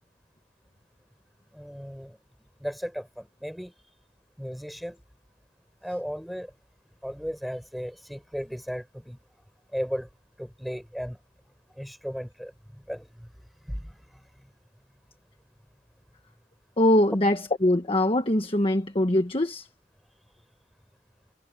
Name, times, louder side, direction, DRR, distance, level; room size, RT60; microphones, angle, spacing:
voice 1, 1.5-2.2 2.6-3.7 4.4-5.0 5.8-6.5 7.0-9.2 9.7-10.1 10.4-11.2 11.8-12.5 12.9-13.3 13.7-14.2, equal, ahead, 5.6 m, -35 dB
voice 2, 16.8-19.7, left 1 dB, 30° left, 1.4 m, -22 dB
head